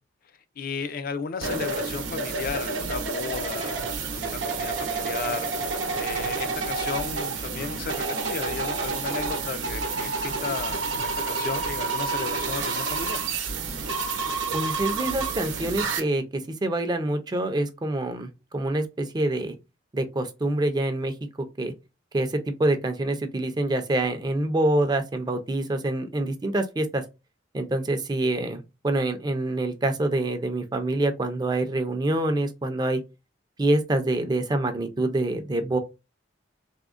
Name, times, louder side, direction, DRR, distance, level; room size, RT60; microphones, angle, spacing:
voice 1, 0.6-3.7 4.1-5.5 6.0-13.2, left 5 dB, 50° left, 0.4 m, -34 dB
sound 1, 1.4-16.0, right 4 dB, 70° right, 0.7 m, -29 dB
voice 2, 14.5-19.5 19.9-21.1 21.6-21.7 22.1-27.0 27.5-33.0 33.6-35.8, right 2 dB, 20° right, 0.4 m, -26 dB
3.5 x 2.1 x 2.4 m
head